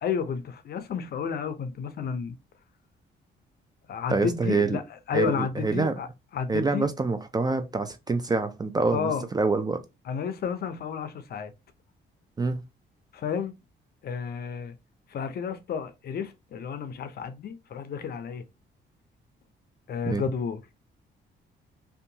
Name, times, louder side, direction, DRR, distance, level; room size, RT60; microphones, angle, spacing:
voice 1, 0.0-2.4 3.9-4.8 5.1-6.1 6.3-6.9 8.9-9.3 10.1-11.5 13.1-13.5 14.0-14.7 15.1-18.4 19.9-20.6, left 7 dB, 50° left, 0.5 m, -31 dB
voice 2, 4.1-4.8 5.1-6.0 6.5-9.8 12.4-12.6 20.1-20.2, right 3 dB, 20° right, 0.3 m, -26 dB
2.7 x 2.3 x 2.7 m
cardioid pair, 90°, 20 cm